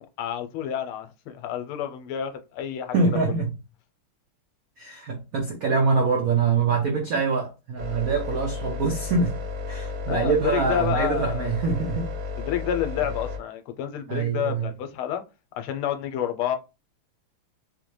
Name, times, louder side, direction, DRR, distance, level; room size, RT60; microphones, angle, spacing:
voice 1, 0.2-2.9 3.3-3.4 10.1-11.5 12.4-15.2 15.6-16.6, left 10 dB, 85° left, 1.5 m, -29 dB
voice 2, 2.9-3.5 4.8-9.3 9.7-12.1 14.1-14.7, right 4 dB, 90° right, 0.7 m, -24 dB
sound 1, 7.8-13.4, left 4 dB, 55° right, 1.3 m, -33 dB
3.9 x 2.1 x 3.1 m
omnidirectional pair, 2.4 m